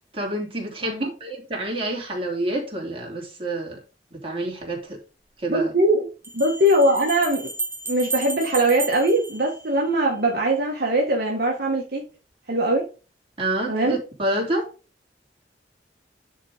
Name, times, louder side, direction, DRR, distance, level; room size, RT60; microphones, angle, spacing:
voice 1, 0.1-3.8 4.1-5.0 5.4-5.7 13.4-14.7, right 1 dB, 35° right, 3.0 m, -28 dB
Bell, 4.6-4.7 6.2-10.2, right 3 dB, 15° right, 1.1 m, -33 dB
voice 2, 5.5-7.5 7.9-12.0 12.5-12.8 13.7-13.9, right 1 dB, 60° right, 1.5 m, -21 dB
10.0 x 3.9 x 5.0 m
head